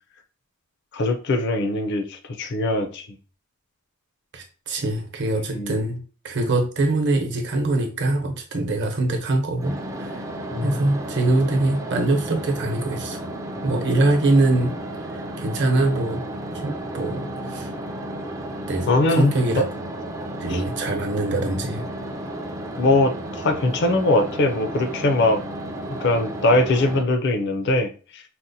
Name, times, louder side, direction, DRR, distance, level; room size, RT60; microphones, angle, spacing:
voice 1, 0.9-3.1 5.5-5.7 10.5-10.8 18.9-19.7 20.5-20.6 22.8-25.4 26.0-28.2, left 2 dB, 55° left, 7 dB, 0.5 m, -21 dB
voice 2, 4.3-10.2 10.6-13.2 13.6-14.8 15.4-16.2 16.5-17.7 18.7-19.6 20.4-21.9, right 2 dB, 55° right, 3 dB, 0.8 m, -23 dB
sound 1, 9.6-27.0, right 1 dB, 15° right, 0.4 m, -33 dB
4.2 x 2.1 x 2.6 m, 0.37 s
head